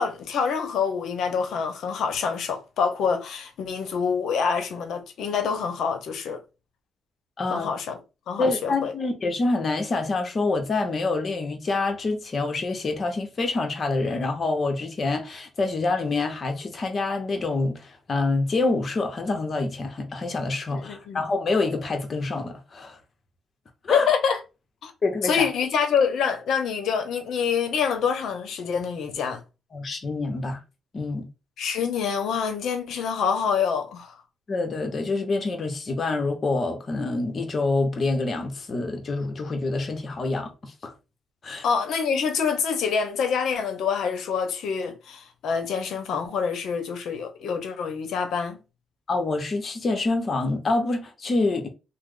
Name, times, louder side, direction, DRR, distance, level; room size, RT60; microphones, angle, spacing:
voice 1, 0.0-6.4 7.5-8.0 8.3-8.9 20.7-21.2 23.9-24.4 24.8-24.9 25.2-29.4 31.6-34.2 41.6-48.6, left 6 dB, 75° left, 0.7 m, -26 dB
voice 2, 7.4-7.7 8.4-23.0 23.8-24.1 25.0-25.5 29.7-30.6 30.9-31.3 34.5-40.9 41.4-41.6 49.1-51.7, left 3 dB, 40° left, 0.8 m, -26 dB
3.0 x 2.0 x 3.7 m
cardioid pair, 90°, 0 cm